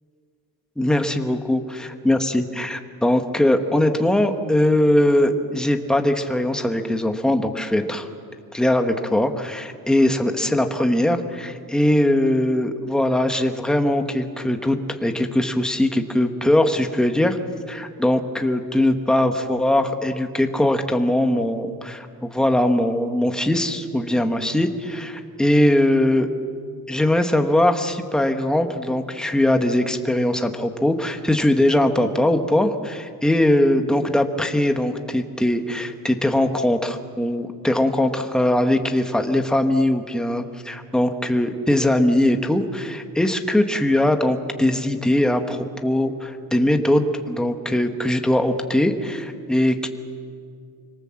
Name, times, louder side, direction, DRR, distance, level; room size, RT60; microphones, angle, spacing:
voice 1, 0.8-1.6 2.0-8.1 8.5-17.4 17.7-26.3 26.9-49.9, left 1 dB, ahead, 6 dB, 1.2 m, -21 dB
26.5 x 25.0 x 7.6 m, 2.3 s
cardioid pair, 175°, 34 cm